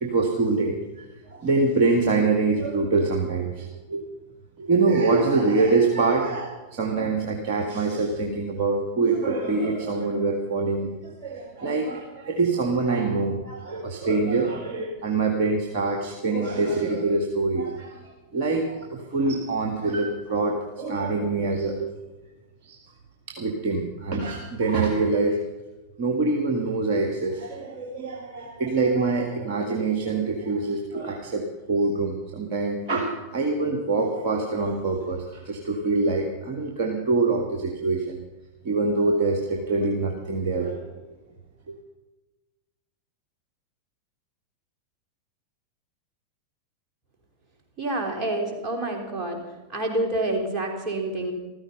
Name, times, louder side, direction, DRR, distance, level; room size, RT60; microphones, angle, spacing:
voice 1, 0.0-4.0 4.6-21.9 22.6-22.8 23.3-25.4 26.0-38.2 38.6-40.9 41.7-41.8, right 3 dB, 45° right, 2 dB, 1.9 m, -25 dB
voice 2, 47.8-49.4 49.7-51.3, right 1 dB, 25° right, 1 dB, 3.6 m, -27 dB
15.0 x 14.0 x 5.5 m, 1.1 s
figure-of-eight pair, 90°, 0 cm